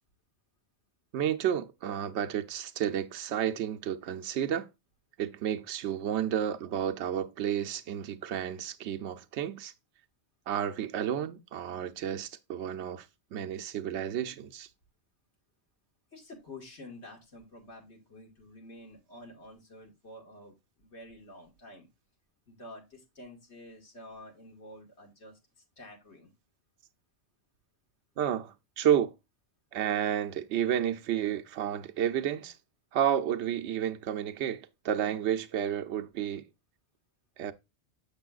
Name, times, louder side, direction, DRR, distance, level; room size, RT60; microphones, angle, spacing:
voice 1, 1.1-4.7 5.2-9.7 10.5-13.1 13.3-14.7 28.2-29.1 29.7-32.6 32.9-36.4 37.4-37.5, right 10 dB, 80° right, 0.9 m, -31 dB
voice 2, 16.1-21.9 22.5-25.4 25.8-26.3, left 1 dB, 80° left, 2.1 m, -49 dB
6.9 x 6.8 x 2.3 m
omnidirectional pair, 1.1 m